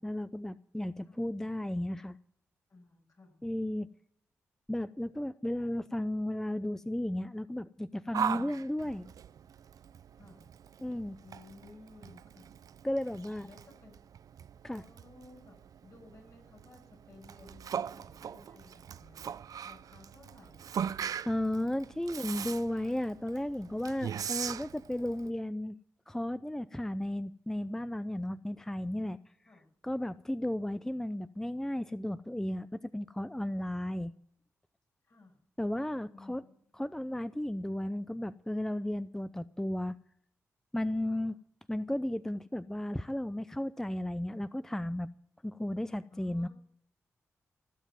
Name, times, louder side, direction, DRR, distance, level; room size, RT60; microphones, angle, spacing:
voice 1, 0.0-2.2 3.4-3.9 4.7-9.1 10.8-11.2 12.8-13.5 14.6-14.8 21.3-25.8 26.1-29.2 29.8-34.1 35.6-36.4 36.8-40.0 40.7-41.4 41.7-45.1 45.4-46.5, left 1 dB, 5° left, 15 dB, 0.5 m, -34 dB
voice 2, 2.7-3.4 8.3-8.6 10.2-10.5 11.2-12.5 13.1-13.9 14.7-19.2 19.6-20.8 29.4-29.7 35.0-35.4 36.1-36.8 41.0-41.3 46.1-46.5, left 3 dB, 50° left, 2 dB, 6.1 m, -56 dB
Yell, 8.1-25.3, right 8 dB, 65° right, 0.5 m, -40 dB
16.5 x 7.3 x 9.0 m, 0.67 s
supercardioid pair, 40°, 7 cm